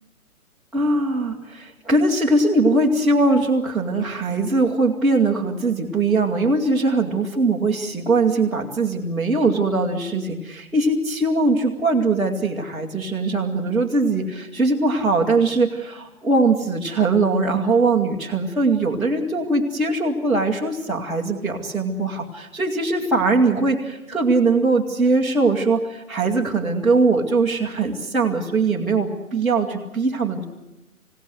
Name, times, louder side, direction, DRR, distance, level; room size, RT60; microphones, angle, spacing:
voice 1, 0.7-30.4, right 3 dB, ahead, -9 dB, 0.9 m, -21 dB
26.5 x 17.0 x 8.0 m, 1.0 s
figure-of-eight pair, 135°, 43 cm